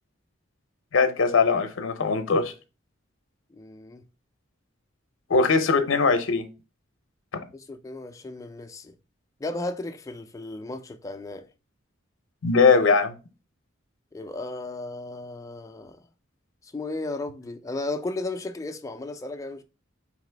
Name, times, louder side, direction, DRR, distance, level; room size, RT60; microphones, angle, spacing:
voice 1, 0.9-2.5 5.3-6.4 12.4-13.1, left 4 dB, 70° left, 0.6 m, -20 dB
voice 2, 3.5-4.0 7.5-8.9 9.4-11.4 14.1-16.0 16.6-19.6, left 2 dB, 15° left, 0.3 m, -35 dB
4.0 x 2.9 x 3.2 m
head